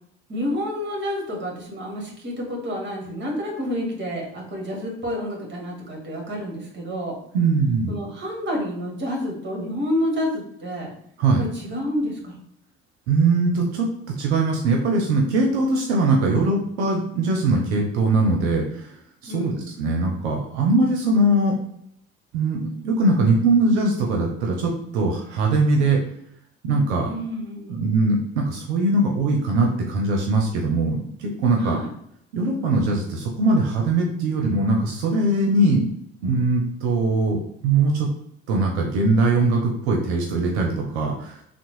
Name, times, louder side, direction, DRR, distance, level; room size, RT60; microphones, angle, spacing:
voice 1, 0.3-7.1 7.9-10.9 11.3-12.4 19.3-19.7 27.1-27.9 31.6-31.9, equal, 35° right, -1 dB, 1.4 m, -29 dB
voice 2, 7.3-7.9 11.2-11.4 13.1-13.9 14.2-18.9 19.2-19.5 19.8-21.6 22.3-26.0 26.6-27.1 27.7-31.8 32.3-35.9 36.2-38.1 38.5-41.4, right 2 dB, 85° right, 0 dB, 0.6 m, -21 dB
3.6 x 2.1 x 3.0 m, 0.72 s
hypercardioid pair, 60°, 32 cm